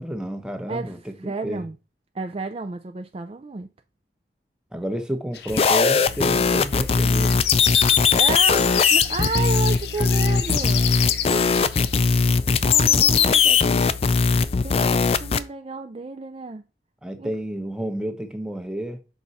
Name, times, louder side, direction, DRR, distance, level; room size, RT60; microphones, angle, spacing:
voice 1, 0.0-1.0 1.2-1.6 4.7-7.4 17.0-19.0, right 1 dB, 5° right, 0.8 m, -30 dB
voice 2, 0.7-1.8 2.1-3.7 8.2-10.8 12.6-13.9 14.6-16.6 17.2-17.3, right 4 dB, 30° right, 0.4 m, -32 dB
sound 1, 5.3-12.2, left 10 dB, 70° left, 0.7 m, -31 dB
sound 2, 5.5-15.4, left 5 dB, 35° left, 0.4 m, -19 dB
6.1 x 5.2 x 4.1 m
head